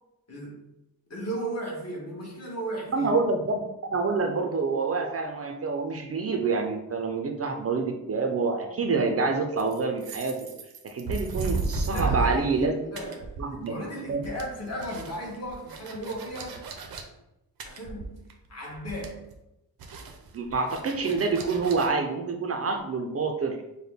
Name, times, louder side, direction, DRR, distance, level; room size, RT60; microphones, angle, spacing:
voice 1, 0.3-0.6 1.1-3.1 11.8-13.4 13.6-16.6 17.6-18.2 18.5-19.3, right 1 dB, 45° left, -3 dB, 1.3 m, -35 dB
voice 2, 2.9-10.4 10.8-12.7 13.4-13.7 14.1-14.2 20.3-23.6, right 4 dB, 40° right, 3 dB, 0.5 m, -27 dB
sound 1, 9.6-12.7 13.0-13.8 14.1-17.0 17.6-18.5 18.7-19.3 19.8-21.9, right 3 dB, 85° right, 0.7 m, -34 dB
5.6 x 2.1 x 3.4 m, 0.90 s
wide cardioid pair, 165°, 36 cm